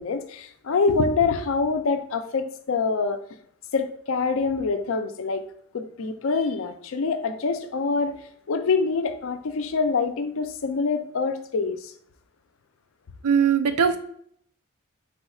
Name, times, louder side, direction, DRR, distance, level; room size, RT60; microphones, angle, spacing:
voice 1, 0.0-3.2 3.7-5.4 5.7-8.1 8.5-11.9, left 4 dB, 60° left, 9 dB, 0.4 m, -25 dB
voice 2, 13.2-14.0, right 7 dB, 85° right, 8 dB, 0.5 m, -20 dB
4.1 x 2.3 x 4.2 m, 0.66 s
head